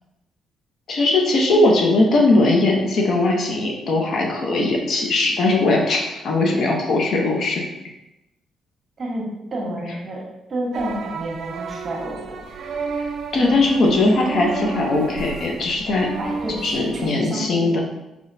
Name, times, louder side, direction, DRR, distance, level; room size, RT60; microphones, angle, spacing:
voice 1, 0.9-7.6 13.3-16.1 16.6-17.8, left 2 dB, 60° left, 0 dB, 1.0 m, -19 dB
voice 2, 9.0-12.4 13.4-13.6 16.2-17.6, right 1 dB, 40° right, -1 dB, 1.4 m, -29 dB
sound 1, 10.7-17.1, right 4 dB, 60° right, 0.6 m, -32 dB
4.4 x 4.1 x 2.8 m, 0.93 s
cardioid pair, 90°, 0 cm